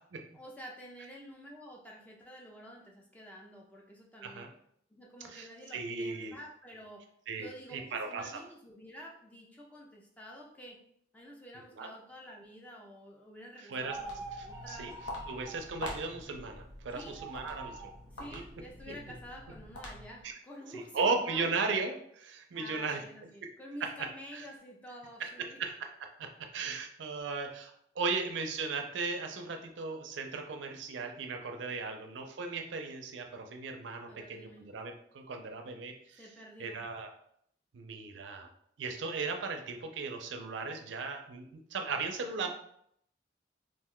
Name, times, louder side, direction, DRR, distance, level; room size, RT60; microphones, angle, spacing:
voice 1, 0.3-4.5 4.9-7.0 7.4-10.8 11.1-14.9 16.9-17.2 18.1-21.5 22.5-25.6 31.7-31.9 34.1-34.7 36.1-36.8 42.4-42.5, equal, 10° left, -2 dB, 0.3 m, -49 dB
voice 2, 5.2-6.4 7.3-8.4 11.7-11.9 13.7-14.0 14.3-14.9 15.3-17.8 18.2-18.4 18.9-19.0 20.2-20.3 20.7-23.0 23.8-23.9 24.3-24.4 25.2-25.3 25.6-36.2 36.6-37.1 37.7-38.5 38.8-42.5, right 4 dB, 75° right, 4 dB, 0.4 m, -37 dB
sound 1, 13.8-15.6 16.9-18.0, right 2 dB, 10° right, 0.7 m, -44 dB
Walk footsteps, 13.9-20.3, left 1 dB, 75° left, 0.6 m, -46 dB
2.5 x 2.2 x 3.6 m, 0.70 s
head